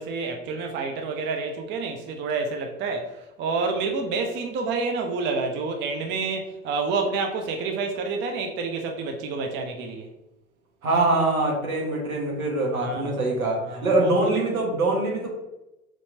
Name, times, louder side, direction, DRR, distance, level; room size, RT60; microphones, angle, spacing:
voice 1, 0.0-10.1 12.8-13.1 13.7-14.4, right 4 dB, 25° right, 4 dB, 0.5 m, -29 dB
voice 2, 10.8-15.3, right 2 dB, 75° right, -2 dB, 1.6 m, -24 dB
4.4 x 4.2 x 2.8 m, 0.94 s
figure-of-eight pair, 80°, 43 cm